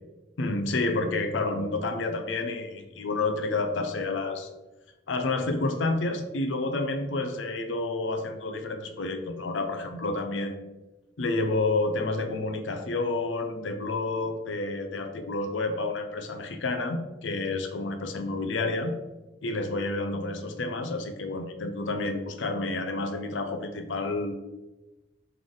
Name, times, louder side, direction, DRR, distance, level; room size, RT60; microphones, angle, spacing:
voice 1, 0.4-4.5 5.1-10.7 11.2-18.9 19.4-24.4, left 2 dB, 75° left, 7 dB, 0.5 m, -29 dB
3.8 x 3.3 x 3.8 m, 1.1 s
head